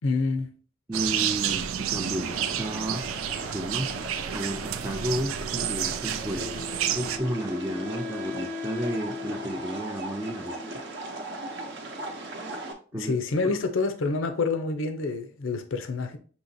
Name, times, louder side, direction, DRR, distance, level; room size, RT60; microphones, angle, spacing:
voice 1, 0.0-0.5 12.9-16.2, left 3 dB, 75° left, 0.6 m, -27 dB
voice 2, 0.9-3.1 3.5-6.7 6.9-10.6 12.9-13.2 13.5-13.6, right 1 dB, 10° right, 0.3 m, -32 dB
sound 1, 0.9-7.2, right 9 dB, 90° right, 0.4 m, -30 dB
sound 2, 2.0-12.7, right 2 dB, 60° right, 0.7 m, -38 dB
Wind instrument woodwind instrument, 6.2-11.2, left 4 dB, 30° right, 1.0 m, -39 dB
6.2 x 2.9 x 2.6 m
head